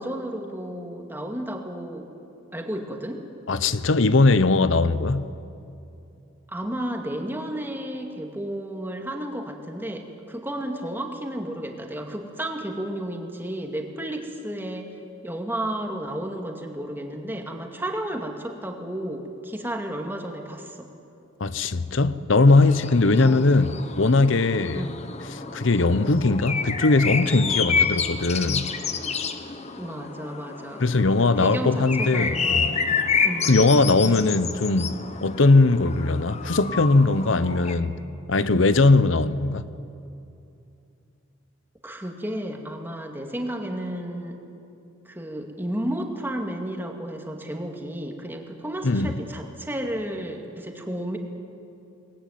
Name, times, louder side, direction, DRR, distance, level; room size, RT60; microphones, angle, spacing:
voice 1, 0.0-2.1 2.5-3.2 6.5-14.9 15.2-20.9 23.2-23.5 24.7-25.1 29.8-30.9 31.2-33.6 34.4-34.5 41.8-44.4 45.1-51.2, right 1 dB, 10° right, 2.2 m, -32 dB
voice 2, 3.5-5.3 21.4-24.9 25.3-28.7 30.8-32.8 33.5-38.0 38.3-39.7 48.8-49.2, left 3 dB, 70° left, 0.8 m, -20 dB
sound 1, 22.5-37.8, left 5 dB, 35° left, 1.0 m, -29 dB
23.0 x 19.5 x 9.5 m
head